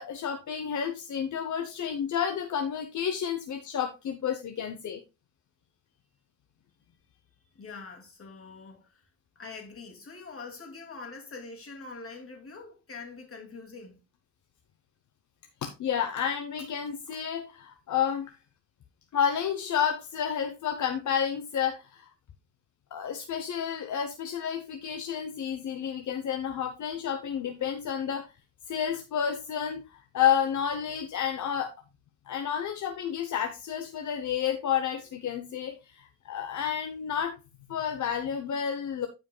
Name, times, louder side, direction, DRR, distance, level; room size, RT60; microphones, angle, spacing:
voice 1, 0.0-5.0 15.6-18.3 19.1-22.1 22.9-28.3 28.7-29.8 30.1-31.7 32.3-37.4 37.7-39.1, left 8 dB, 70° left, 0.8 m, -30 dB
voice 2, 7.5-9.0 9.4-14.0, left 4 dB, 45° left, 2.5 m, -44 dB
14.0 x 5.2 x 2.2 m
wide cardioid pair, 110°, 30 cm